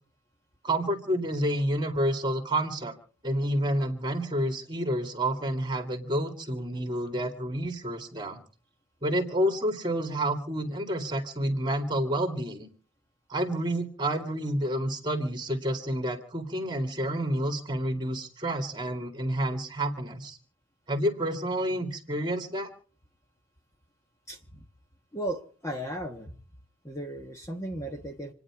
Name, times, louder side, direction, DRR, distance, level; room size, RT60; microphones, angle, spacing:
voice 1, 0.6-2.9 3.2-8.4 9.0-12.7 13.3-20.4 20.9-22.7, right 1 dB, 20° right, 5 dB, 2.2 m, -29 dB
voice 2, 24.3-24.6 25.1-26.4 26.8-28.3, right 1 dB, 15° left, 3 dB, 1.2 m, -36 dB
27.5 x 9.9 x 4.8 m, 0.42 s
head